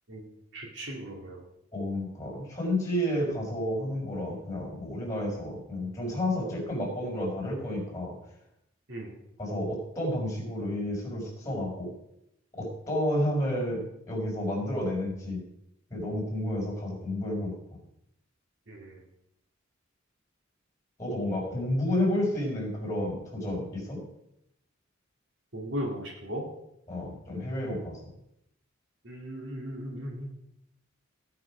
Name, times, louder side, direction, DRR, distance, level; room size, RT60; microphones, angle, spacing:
voice 1, 0.5-1.4 8.9-9.1 18.7-19.0 25.5-26.4 29.0-30.3, equal, 65° right, 0 dB, 2.3 m, -37 dB
voice 2, 1.7-8.2 9.4-12.0 12.5-15.4 15.9-17.5 21.0-24.0 26.9-28.0, left 1 dB, 15° left, -1 dB, 5.2 m, -31 dB
17.5 x 6.0 x 5.0 m, 0.81 s
head